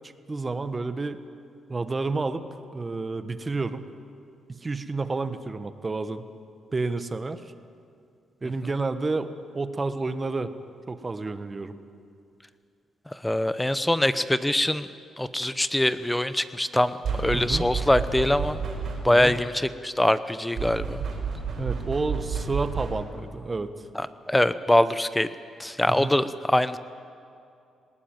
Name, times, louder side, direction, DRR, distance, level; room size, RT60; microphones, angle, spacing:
voice 1, 0.3-1.2 1.7-2.4 2.7-3.9 4.5-6.2 6.7-7.4 8.4-9.3 9.5-10.5 10.9-11.7 17.3-17.6 19.1-19.4 21.6-23.7 25.9-26.1, right 3 dB, 30° right, 11 dB, 1.3 m, -30 dB
voice 2, 13.2-14.9 15.2-18.6 19.0-21.0 23.9-25.3 25.6-26.8, left 1 dB, 10° left, 13 dB, 0.9 m, -23 dB
sound 1, 17.0-19.3 20.6-23.2, right 6 dB, 65° right, 5.3 m, -31 dB
20.0 x 18.5 x 9.1 m, 2.5 s
cardioid pair, 80°, 0 cm